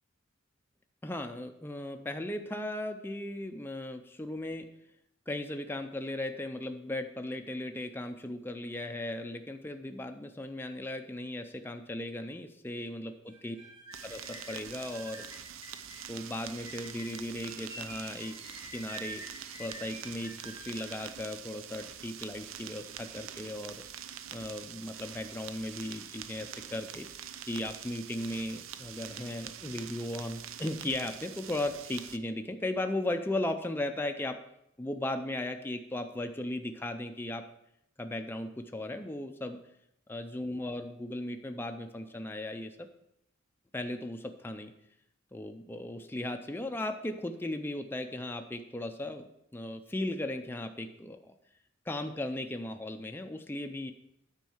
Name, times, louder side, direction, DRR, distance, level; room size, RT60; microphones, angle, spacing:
voice 1, 1.0-4.7 5.3-13.6 14.0-15.2 16.1-18.3 18.7-19.2 19.6-23.8 24.3-27.1 27.5-34.4 34.8-37.4 38.0-39.6 40.1-42.9 43.7-44.7 45.3-49.3 49.5-51.3 51.9-53.9, left 1 dB, 10° left, 5 dB, 0.4 m, -37 dB
sound 1, 13.3-21.1, right 1 dB, 25° right, 1.9 m, -48 dB
sound 2, 13.9-32.2, right 9 dB, 80° right, 0.5 m, -45 dB
9.3 x 4.5 x 7.1 m, 0.79 s
head